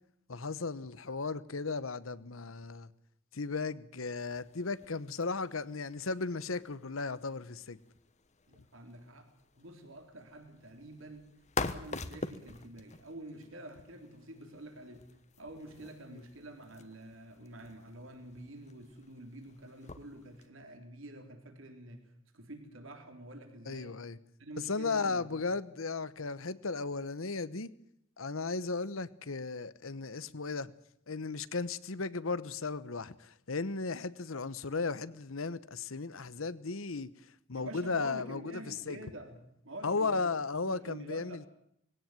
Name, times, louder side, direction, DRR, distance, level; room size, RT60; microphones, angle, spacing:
voice 1, 0.3-2.9 3.3-7.8 16.1-16.2 23.7-24.2 24.7-27.7 28.2-30.7 31.1-37.1 37.5-39.0 39.8-41.4, left 4 dB, 80° left, 1.0 m, -35 dB
sound 1, 4.2-20.5, left 3 dB, 35° left, 1.2 m, -46 dB
voice 2, 8.5-11.3 11.6-15.1 15.4-24.0 24.4-25.5 37.5-40.3 40.7-41.4, right 1 dB, 70° right, 3.5 m, -48 dB
20.5 x 17.0 x 9.1 m
head